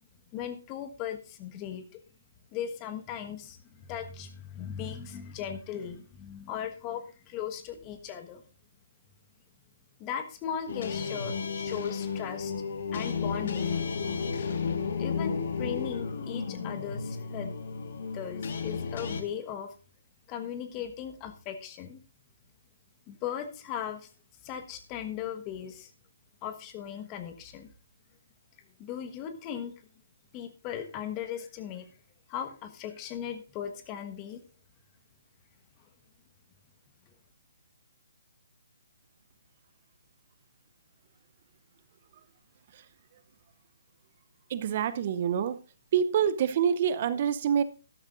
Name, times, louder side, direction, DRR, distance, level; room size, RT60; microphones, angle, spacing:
voice 1, 0.3-2.0 2.5-8.4 10.0-12.5 12.9-13.8 15.0-17.6 18.1-19.7 20.3-22.0 23.1-24.1 24.4-25.9 26.4-27.7 28.8-29.7 30.3-31.9 32.3-34.4, left 9 dB, 25° left, 8 dB, 1.3 m, -38 dB
sound 1, 10.7-19.2, left 5 dB, 55° left, 1.5 m, -33 dB
voice 2, 44.5-45.6 45.9-47.6, right 8 dB, 45° right, 15 dB, 0.6 m, -26 dB
12.5 x 12.5 x 2.5 m, 0.35 s
figure-of-eight pair, 140°, 0 cm